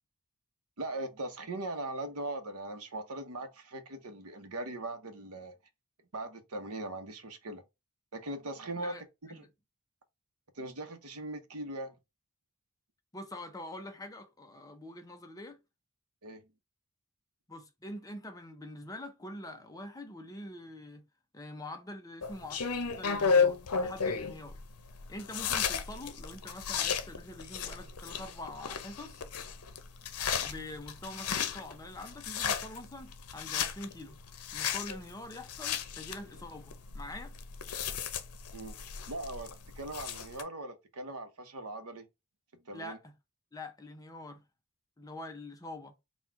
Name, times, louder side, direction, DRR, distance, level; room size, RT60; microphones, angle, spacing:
voice 1, 0.8-5.6 6.1-7.6 8.1-9.0 9.3-9.4 10.5-12.0 16.2-16.5 34.9-35.0 38.5-38.8 39.1-42.1 42.6-43.0, right 2 dB, 85° right, 0.9 m, -40 dB
voice 2, 13.1-15.6 17.5-21.0 21.3-22.6 23.0-24.6 25.1-29.2 30.3-34.2 34.5-37.3 42.7-43.1 43.5-44.4 45.0-45.9, left 1 dB, 15° left, 0.6 m, -45 dB
sound 1, 22.2-40.4, left 6 dB, 90° left, 0.7 m, -34 dB
4.1 x 2.4 x 4.4 m
head